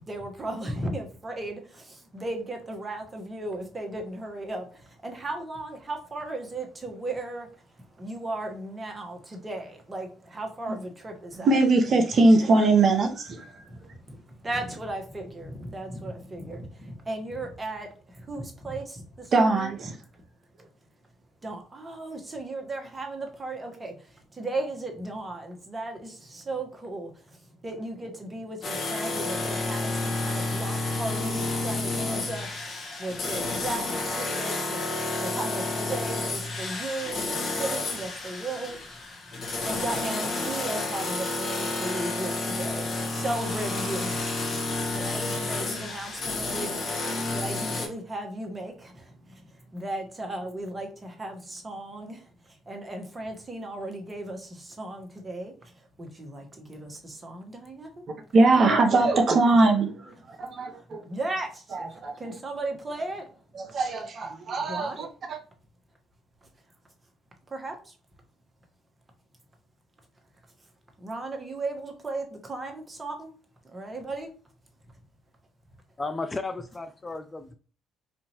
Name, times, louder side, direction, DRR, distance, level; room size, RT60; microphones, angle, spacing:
voice 1, 0.0-7.5 8.0-11.5 13.7-19.7 21.4-27.1 27.6-39.0 39.5-44.2 44.9-52.2 52.7-55.5 56.0-58.0 60.7-61.6 62.2-63.3 64.7-65.1 67.5-67.9 71.0-73.3 73.6-74.3, right 2 dB, 25° right, 3 dB, 1.3 m, -36 dB
voice 2, 11.3-13.6 19.3-20.0 58.3-61.0 61.7-62.4 63.5-65.4, right 2 dB, 50° right, 4 dB, 0.8 m, -22 dB
sound 1, 28.6-47.9, left 2 dB, 55° left, 1.3 m, -30 dB
voice 3, 76.0-77.5, left 3 dB, 25° left, 9 dB, 0.4 m, -34 dB
4.3 x 2.7 x 2.9 m, 0.39 s
hypercardioid pair, 55°, 0 cm